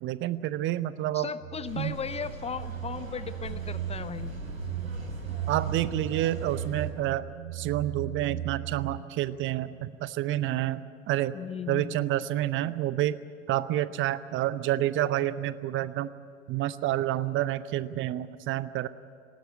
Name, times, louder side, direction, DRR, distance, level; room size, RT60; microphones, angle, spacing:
voice 1, 0.0-1.3 1.8-1.9 5.5-7.2 7.5-11.3 11.7-13.2 13.5-16.1 16.5-18.9, right 13 dB, 30° right, 16 dB, 0.7 m, -29 dB
voice 2, 1.1-4.3 11.3-12.1, left 6 dB, 15° left, 14 dB, 0.6 m, -36 dB
sound 1, 1.4-9.0, right 14 dB, 65° right, 1.0 m, -37 dB
sound 2, 1.6-6.9, equal, 85° right, 3.0 m, -40 dB
19.5 x 18.0 x 9.3 m, 2.5 s
figure-of-eight pair, 80°, 39 cm